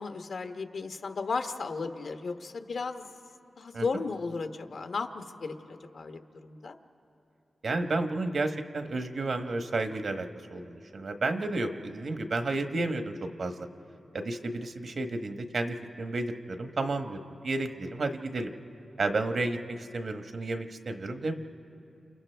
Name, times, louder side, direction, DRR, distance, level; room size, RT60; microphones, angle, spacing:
voice 1, 0.0-3.1 3.6-6.7, left 4 dB, 75° left, 6 dB, 1.1 m, -35 dB
voice 2, 7.6-13.7 14.1-18.5 19.0-21.3, right 2 dB, 65° right, 7 dB, 1.1 m, -32 dB
29.0 x 28.5 x 3.4 m, 2.7 s
cardioid pair, 75°, 0 cm